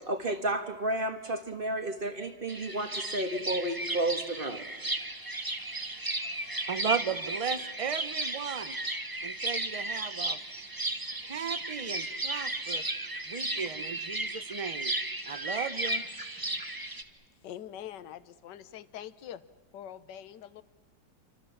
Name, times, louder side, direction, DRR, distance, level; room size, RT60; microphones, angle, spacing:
voice 1, 0.1-4.6, right 1 dB, 30° right, 7 dB, 1.8 m, -32 dB
sound 1, 2.5-17.0, right 2 dB, 15° right, 1.1 m, -35 dB
voice 2, 6.7-8.8 9.2-10.4 11.2-12.9 13.3-14.9 15.2-16.0, right 7 dB, 45° right, 14 dB, 0.4 m, -35 dB
voice 3, 17.4-19.4 19.7-20.6, left 10 dB, 75° left, 15 dB, 1.5 m, -44 dB
27.5 x 25.0 x 7.3 m, 1.5 s
omnidirectional pair, 2.0 m